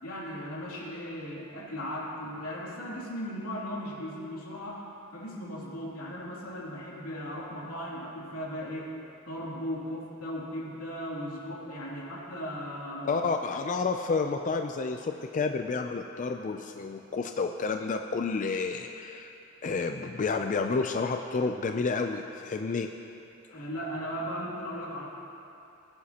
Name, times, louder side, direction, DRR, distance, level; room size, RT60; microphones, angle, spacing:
voice 1, 0.0-9.0 9.3-13.3 23.5-25.1, equal, 90° left, -5 dB, 2.8 m, -37 dB
voice 2, 13.1-19.3 19.6-22.9 23.5-23.6, left 4 dB, 35° left, 5 dB, 0.4 m, -30 dB
20.5 x 10.0 x 2.9 m, 2.7 s
head